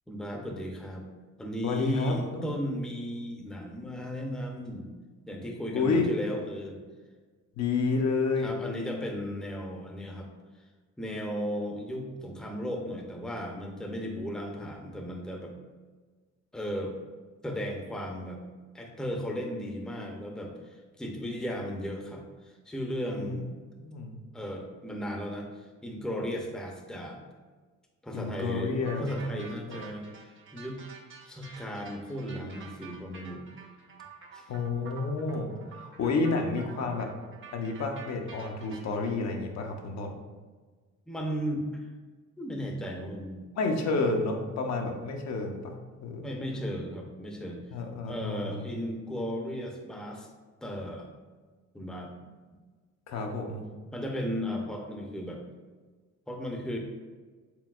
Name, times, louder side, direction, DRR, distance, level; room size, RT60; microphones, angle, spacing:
voice 1, 0.1-1.1 1.4-4.9 5.3-6.8 8.4-10.3 11.0-15.5 16.5-16.9 17.4-18.4 18.7-23.5 24.3-27.2 28.0-30.8 31.3-33.4 34.3-34.5 35.3-35.4 41.1-41.9 42.4-43.5 46.2-47.6 48.1-50.3 50.6-51.1 51.7-52.1 53.9-55.4 56.3-56.8, equal, ahead, 1 dB, 0.6 m, -35 dB
voice 2, 1.6-2.5 5.7-6.1 7.6-8.5 23.2-23.3 23.8-24.2 28.1-29.1 29.3-29.8 34.5-37.1 37.5-40.1 43.6-45.7 46.0-46.3 47.7-48.7 53.1-53.7, left 3 dB, 60° left, 2 dB, 0.7 m, -30 dB
sound 1, 28.8-39.1, right 6 dB, 40° right, 0.8 m, -49 dB
4.6 x 3.4 x 2.4 m, 1.4 s
cardioid pair, 90°, 30 cm